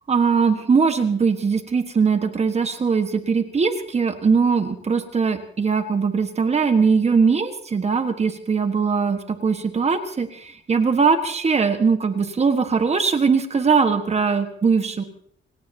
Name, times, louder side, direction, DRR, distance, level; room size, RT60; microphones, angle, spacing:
voice 1, 0.1-15.0, right 5 dB, 30° right, 7 dB, 1.5 m, -20 dB
28.5 x 17.0 x 2.9 m, 0.64 s
cardioid pair, 135°, 21 cm